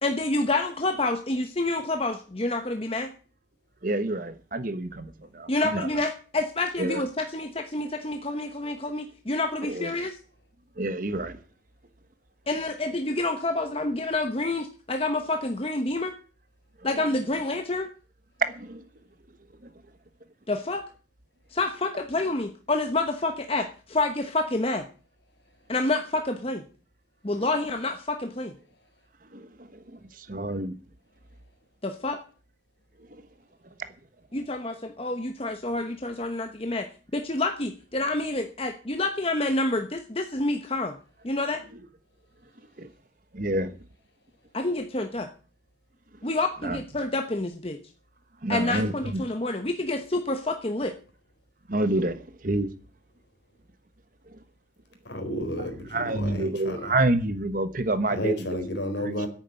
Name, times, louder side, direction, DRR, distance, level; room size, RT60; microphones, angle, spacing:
voice 1, 0.0-3.1 5.5-10.2 12.5-16.1 16.8-17.9 20.5-20.8 21.5-24.8 25.7-26.6 27.2-28.5 31.8-32.2 34.3-36.9 37.1-41.0 41.2-41.6 44.5-45.3 46.2-47.8 48.5-50.9, left 2 dB, 30° left, 1.0 m, -28 dB
voice 2, 3.8-5.9 6.8-7.0 9.6-9.9 10.8-11.4 18.4-18.9 19.6-19.7 27.4-27.5 29.3-30.8 33.1-33.2 41.7-41.8 42.8-42.9 43.3-43.8 46.2-46.3 46.6-46.8 48.4-49.2 51.7-52.7 54.3-54.4 55.6-58.6 59.0-59.3, right 2 dB, 45° right, 1.2 m, -29 dB
voice 3, 55.0-56.9 58.1-59.3, equal, 70° left, 4.0 m, -31 dB
10.5 x 8.9 x 9.0 m
head